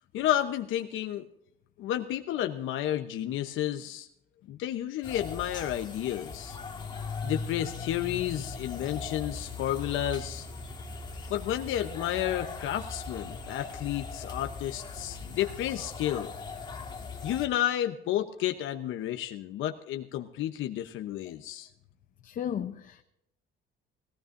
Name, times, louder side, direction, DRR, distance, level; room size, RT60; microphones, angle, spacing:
voice 1, 0.1-1.3 1.8-4.1 4.5-6.6 7.2-10.5 11.3-16.3 17.2-21.7, left 12 dB, 75° left, 0.9 m, -31 dB
sound 1, 5.0-17.5, left 4 dB, 20° left, 1.8 m, -39 dB
voice 2, 22.2-23.0, left 9 dB, 40° left, 0.7 m, -35 dB
20.5 x 15.5 x 2.6 m
cardioid pair, 170°, 21 cm